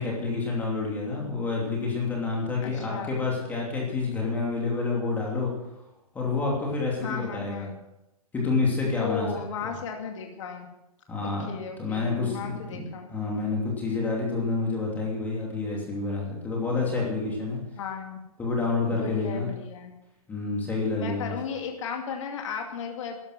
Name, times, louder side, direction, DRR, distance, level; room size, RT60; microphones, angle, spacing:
voice 1, 0.0-5.5 6.1-7.7 8.3-9.3 9.6-9.7 11.1-11.5 11.8-17.6 18.4-19.5 20.3-21.3, left 3 dB, 10° left, -2 dB, 2.9 m, -28 dB
voice 2, 2.6-3.2 7.0-7.7 9.0-10.7 11.2-13.1 17.8-18.2 18.9-20.0 20.9-23.2, left 6 dB, 55° left, 2 dB, 2.4 m, -35 dB
13.0 x 11.0 x 6.1 m, 0.91 s
hypercardioid pair, 155°, 19 cm